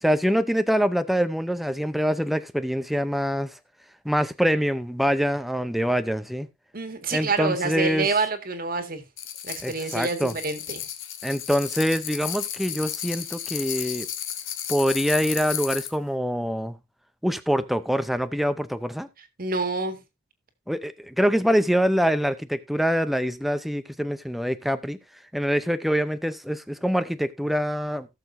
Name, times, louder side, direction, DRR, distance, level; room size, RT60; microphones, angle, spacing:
voice 1, 0.0-3.6 4.0-6.5 7.1-8.1 9.6-10.3 11.2-14.1 14.7-16.8 17.2-19.1 20.7-25.0 25.3-28.1, equal, ahead, 0.5 m, -25 dB
voice 2, 6.7-9.0 9.4-10.8 19.4-20.0, right 3 dB, 45° right, 1.8 m, -27 dB
sound 1, 9.2-15.9, left 10 dB, 70° left, 1.6 m, -33 dB
18.0 x 6.8 x 2.6 m
head